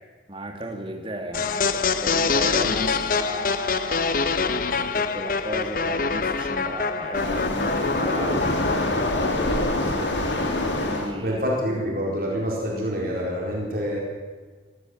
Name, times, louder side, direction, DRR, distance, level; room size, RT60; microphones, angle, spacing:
voice 1, 0.3-11.4, right 1 dB, 30° right, 3 dB, 2.4 m, -35 dB
sound 1, 1.3-9.4, left 4 dB, 50° left, 0.9 m, -25 dB
Waves surf, 7.1-11.1, left 1 dB, 80° left, 3.1 m, -25 dB
voice 2, 11.2-14.0, equal, 50° right, -2 dB, 4.2 m, -26 dB
23.0 x 14.5 x 7.8 m, 1.5 s
head